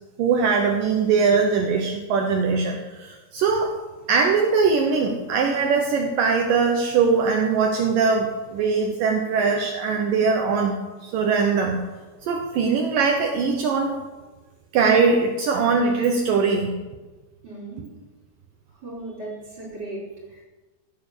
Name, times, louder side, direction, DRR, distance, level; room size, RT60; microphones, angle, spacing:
voice 1, 0.2-3.7 4.1-11.8 12.2-14.0 14.7-16.8, right 5 dB, 80° right, 2 dB, 2.0 m, -21 dB
voice 2, 17.4-17.9 18.8-20.0 20.3-20.4, right 2 dB, 25° right, -2 dB, 4.6 m, -36 dB
16.0 x 9.3 x 7.0 m, 1.2 s
omnidirectional pair, 5.5 m